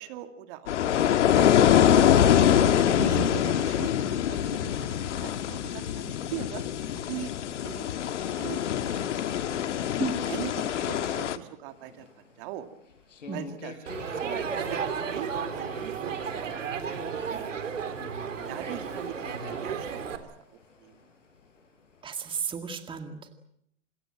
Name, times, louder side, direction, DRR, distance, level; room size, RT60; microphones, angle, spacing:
voice 1, 0.0-2.2 3.0-6.6 7.0-7.3 7.6-7.9 8.3-9.4 10.3-12.1 12.4-12.7 13.3-16.8 17.1-17.6 18.5-20.3 20.8-21.0, right 12 dB, 45° right, 8 dB, 2.3 m, -41 dB
sound 1, 0.7-11.4, left 10 dB, 70° left, 1.8 m, -24 dB
voice 2, 3.0-3.3 10.0-10.2 13.3-13.4 22.0-23.2, right 5 dB, 15° right, 7 dB, 2.1 m, -33 dB
sound 2, 11.7-22.0, left 4 dB, 90° left, 7.5 m, -48 dB
Crowd, 13.9-20.2, right 6 dB, 90° right, 3.4 m, -33 dB
26.5 x 21.5 x 7.6 m, 0.73 s
hypercardioid pair, 130°, 36 cm